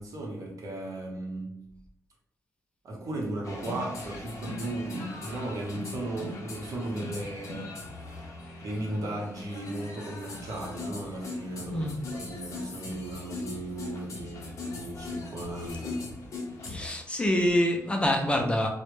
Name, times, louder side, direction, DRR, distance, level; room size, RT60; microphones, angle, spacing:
voice 1, 0.0-1.6 2.8-7.8 8.6-16.0, right 1 dB, 65° right, -1 dB, 0.7 m, -36 dB
sound 1, 3.4-16.9, left 3 dB, 60° left, 0.6 m, -40 dB
voice 2, 11.7-12.0 16.6-18.7, left 1 dB, 20° left, 2 dB, 0.4 m, -26 dB
2.0 x 2.0 x 3.0 m, 0.75 s
cardioid pair, 105°, 6 cm